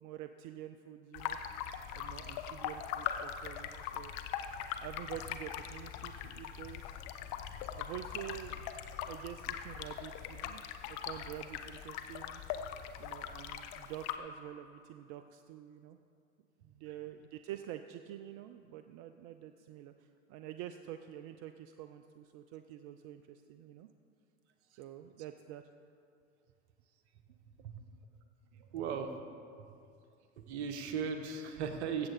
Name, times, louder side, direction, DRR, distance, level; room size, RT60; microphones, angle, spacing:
voice 1, 0.0-1.4 1.9-4.1 4.8-7.3 7.8-8.6 8.9-10.6 10.9-12.4 13.0-16.0 16.6-23.9 24.7-25.7 27.8-27.9 28.7-28.9, right 12 dB, 55° right, 9 dB, 0.6 m, -47 dB
sound 1, 1.1-14.2, left 9 dB, 55° left, 0.8 m, -41 dB
voice 2, 28.5-29.1 29.6-29.7 30.4-32.1, right 6 dB, 70° right, 6 dB, 1.3 m, -37 dB
15.5 x 7.7 x 4.2 m, 2.4 s
hypercardioid pair, 80°, 35 cm